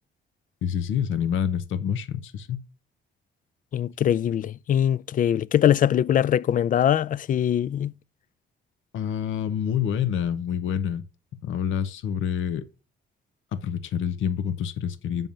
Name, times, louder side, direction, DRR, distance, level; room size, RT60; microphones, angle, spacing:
voice 1, 0.6-2.6 8.9-11.0 11.4-12.7 13.5-15.3, left 8 dB, 80° left, 0.8 m, -27 dB
voice 2, 3.7-7.9, left 10 dB, 45° left, 0.4 m, -22 dB
7.1 x 5.4 x 7.4 m
cardioid pair, 90°, 20 cm